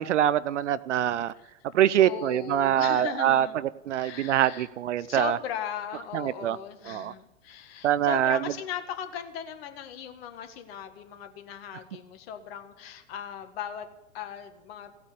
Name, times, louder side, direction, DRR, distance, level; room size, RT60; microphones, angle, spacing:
voice 1, 0.0-1.3 1.7-5.4 6.1-6.6 6.9-7.1 7.8-8.5, right 11 dB, 60° right, 18 dB, 0.7 m, -24 dB
voice 2, 2.0-3.6 3.9-4.7 5.0-13.9 14.1-14.9, left 9 dB, 45° left, 8 dB, 1.9 m, -38 dB
17.0 x 8.8 x 9.9 m, 0.99 s
figure-of-eight pair, 105°, 41 cm